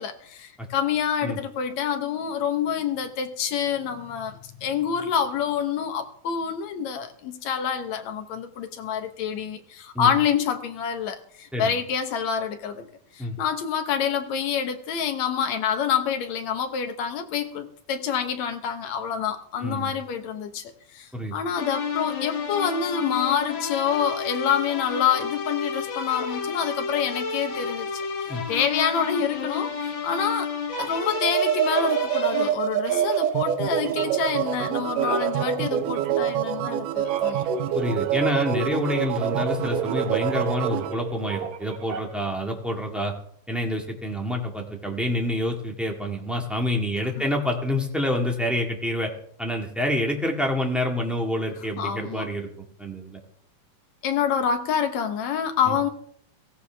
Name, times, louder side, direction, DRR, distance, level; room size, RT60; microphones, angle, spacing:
voice 1, 0.0-12.9 13.1-28.0 28.5-30.5 30.8-37.4 51.8-52.3 54.0-55.9, left 8 dB, 65° left, 7 dB, 2.2 m, -27 dB
voice 2, 19.6-19.9 21.1-21.3 28.3-28.4 37.7-43.1 43.5-49.1 49.4-52.5 52.8-53.2 55.7-55.8, left 1 dB, ahead, 0 dB, 0.8 m, -27 dB
sound 1, 21.6-32.5, left 5 dB, 50° left, 1.6 m, -31 dB
sound 2, 30.7-32.5 32.8-42.3, right 6 dB, 65° right, 2.2 m, -34 dB
sound 3, 31.1-40.9, right 11 dB, 85° right, 2.3 m, -26 dB
17.0 x 15.5 x 3.5 m, 0.63 s
omnidirectional pair, 3.7 m